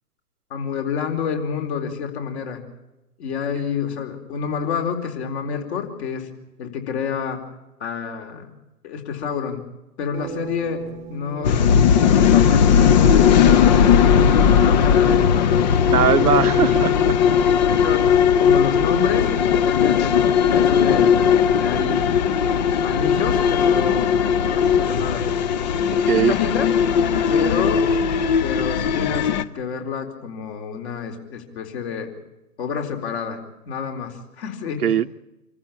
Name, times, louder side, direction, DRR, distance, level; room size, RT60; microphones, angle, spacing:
voice 1, 0.5-2.6 3.2-6.3 6.6-7.4 7.8-8.5 8.8-9.6 10.0-10.8 11.1-15.7 16.2-16.6 17.7-18.1 18.4-21.3 21.6-22.0 22.8-25.3 26.1-26.7 27.3-29.3 29.5-32.1 32.6-33.4 33.7-34.9, left 6 dB, 45° left, 5 dB, 4.3 m, -28 dB
sound 1, 10.1-13.1, right 7 dB, 15° right, 1.1 m, -38 dB
sound 2, 11.4-29.4, left 7 dB, 30° left, 0.8 m, -17 dB
voice 2, 15.9-17.2 26.0-26.4 34.8-35.1, right 8 dB, 70° right, 11 dB, 1.0 m, -20 dB
26.5 x 14.5 x 8.7 m, 0.98 s
hypercardioid pair, 135°, 47 cm